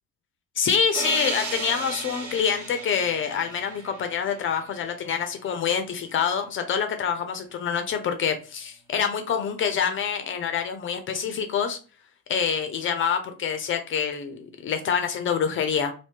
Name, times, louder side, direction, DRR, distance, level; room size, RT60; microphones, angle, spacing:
voice 1, 0.6-11.8 12.3-15.9, left 7 dB, 30° left, 7 dB, 0.4 m, -26 dB
sound 1, 0.9-4.7, right 4 dB, 40° right, 1.1 m, -35 dB
3.3 x 2.6 x 2.8 m, 0.35 s
figure-of-eight pair, 55°, 45 cm